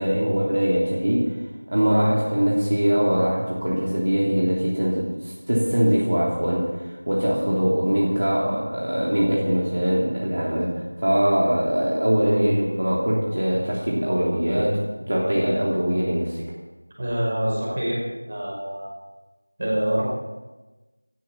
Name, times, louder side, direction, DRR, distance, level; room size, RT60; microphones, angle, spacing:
voice 1, 0.0-1.4 1.7-16.4, equal, 55° right, -5 dB, 3.3 m, -22 dB
voice 2, 17.0-18.9 19.6-20.0, right 1 dB, 30° right, -3 dB, 5.3 m, -25 dB
16.5 x 13.0 x 5.9 m, 1.2 s
figure-of-eight pair, 175°, 0 cm